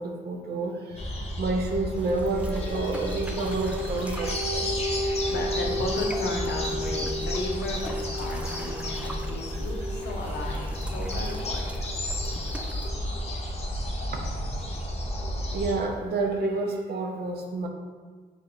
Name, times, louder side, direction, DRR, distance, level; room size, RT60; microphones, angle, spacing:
voice 1, 0.0-4.7 9.5-9.6 12.1-12.2 12.6-13.2 14.1-14.5 15.5-17.7, right 3 dB, 70° right, 2 dB, 0.5 m, -30 dB
sound 1, 1.0-15.8, equal, 35° left, 0.7 m, -32 dB
sound 2, 1.9-12.9, equal, 10° left, 1.1 m, -34 dB
sound 3, 2.0-12.9, right 1 dB, 5° right, 0.3 m, -44 dB
voice 2, 3.3-3.6 4.8-11.9, left 2 dB, 80° left, 0 dB, 0.6 m, -35 dB
2.8 x 2.5 x 4.1 m, 1.5 s
cardioid pair, 60°, 17 cm